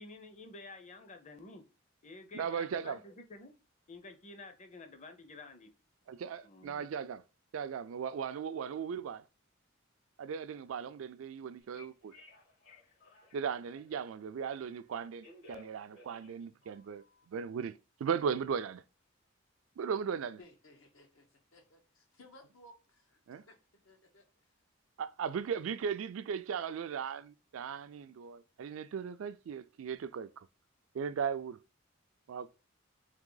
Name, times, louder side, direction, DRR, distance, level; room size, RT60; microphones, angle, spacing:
voice 1, 0.0-1.6 2.0-3.5 3.9-5.7 6.4-6.9, left 3 dB, 35° left, 0.6 m, -50 dB
voice 2, 2.3-3.0 6.1-7.2 7.5-9.2 10.2-12.1 13.3-18.8 19.8-20.4 23.3-23.4 25.0-30.5 30.9-31.6 32.3-32.5, right 7 dB, 75° right, 0.3 m, -37 dB
Telephone, 11.6-14.1 14.9-17.3, left 3 dB, 60° left, 2.2 m, -58 dB
voice 3, 20.4-23.6 23.8-24.5, left 1 dB, 85° left, 1.1 m, -59 dB
3.6 x 3.3 x 3.8 m
head